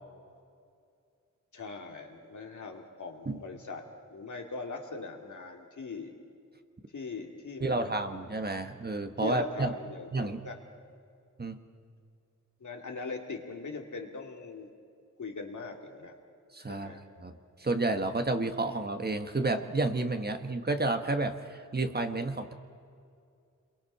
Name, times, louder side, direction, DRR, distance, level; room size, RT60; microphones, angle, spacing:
voice 1, 1.5-6.1 6.9-8.2 9.2-10.6 12.6-14.7 15.2-16.2 16.7-17.0, left 4 dB, 70° left, 1 dB, 2.5 m, -41 dB
voice 2, 7.6-9.7 10.1-10.5 11.4-11.6 16.5-16.9 17.2-17.3 17.6-22.5, right 2 dB, 30° right, 7 dB, 1.4 m, -30 dB
28.0 x 22.5 x 5.6 m, 2.4 s
wide cardioid pair, 75°, 31 cm